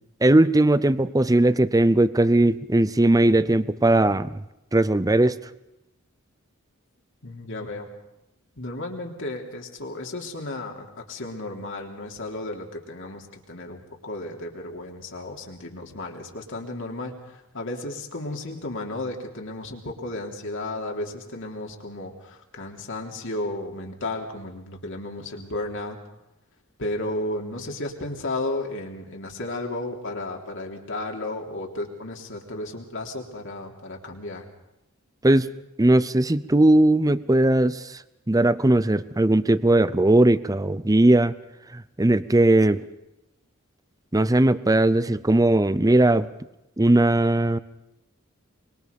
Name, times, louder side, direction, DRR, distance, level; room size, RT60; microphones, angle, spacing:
voice 1, 0.2-4.4 4.7-5.4 35.2-35.5 35.8-37.9 38.3-41.3 41.7-42.8 44.1-46.3 46.8-47.6, right 1 dB, 15° right, 16 dB, 0.7 m, -19 dB
voice 2, 7.2-7.9 8.6-26.0 26.8-34.4, left 2 dB, 65° left, 1 dB, 3.4 m, -33 dB
25.0 x 23.0 x 5.4 m, 0.90 s
head